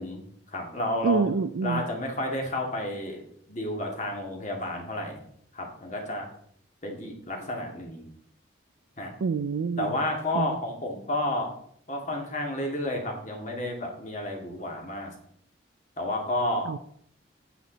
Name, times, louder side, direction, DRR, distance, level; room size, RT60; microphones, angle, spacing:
voice 1, 0.0-1.2 1.6-3.2 3.5-5.2 5.5-6.3 6.8-8.0 9.0-9.1 9.8-11.5 11.9-15.1 16.0-16.7, left 1 dB, 40° left, 1 dB, 2.2 m, -31 dB
voice 2, 1.0-1.8 9.2-10.0 10.3-10.6 16.7-16.8, right 5 dB, 90° right, 12 dB, 0.4 m, -27 dB
9.1 x 8.5 x 4.0 m, 0.65 s
head